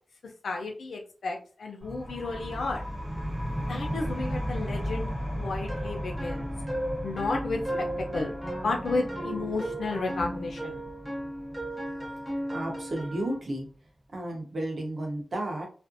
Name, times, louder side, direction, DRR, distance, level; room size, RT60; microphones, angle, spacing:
voice 1, 0.4-2.8 3.5-5.1 5.4-6.5 7.0-7.6 8.0-8.4 8.6-10.8, left 3 dB, 85° left, 1 dB, 0.5 m, -32 dB
sound 1, 1.8-13.2, equal, 25° right, 1.0 m, -36 dB
sound 2, 5.7-13.4, right 1 dB, 5° right, 0.6 m, -35 dB
voice 2, 12.5-13.7 14.1-15.7, right 1 dB, 50° right, 1 dB, 0.8 m, -33 dB
2.5 x 2.0 x 2.5 m, 0.38 s
wide cardioid pair, 115°, 0 cm